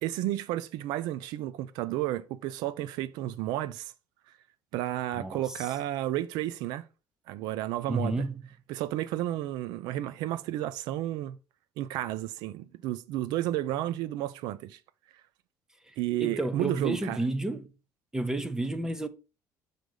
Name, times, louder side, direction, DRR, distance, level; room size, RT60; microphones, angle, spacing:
voice 1, 0.0-3.9 4.7-6.8 7.3-8.2 8.7-11.4 11.8-14.8 16.0-17.2, right 14 dB, 75° right, 0.6 m, -32 dB
voice 2, 5.2-5.7 7.9-8.4 15.9-17.7 18.1-19.1, right 2 dB, 10° right, 0.7 m, -31 dB
6.6 x 3.9 x 4.9 m
cardioid pair, 140°, 7 cm